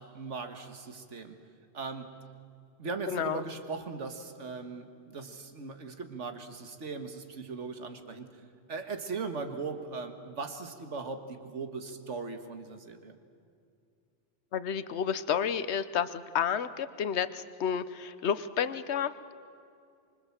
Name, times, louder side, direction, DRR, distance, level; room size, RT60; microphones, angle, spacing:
voice 1, 0.0-1.4 1.7-2.1 2.8-8.3 8.7-13.2, right 4 dB, 80° right, 7 dB, 1.9 m, -39 dB
voice 2, 3.1-3.4 14.5-19.1, left 8 dB, 70° left, 13 dB, 1.1 m, -30 dB
25.0 x 24.0 x 7.4 m, 2.4 s
omnidirectional pair, 1.2 m